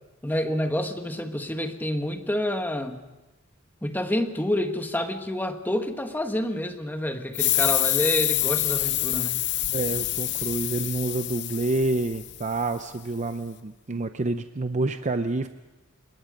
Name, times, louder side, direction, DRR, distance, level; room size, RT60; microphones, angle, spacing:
voice 1, 0.2-3.0 3.8-9.4, left 1 dB, 10° left, 6 dB, 1.5 m, -28 dB
sound 1, 7.3-12.6, left 16 dB, 55° left, 0.6 m, -27 dB
voice 2, 9.7-15.5, right 2 dB, 35° right, 9 dB, 0.6 m, -28 dB
26.0 x 21.5 x 5.2 m, 1.1 s
head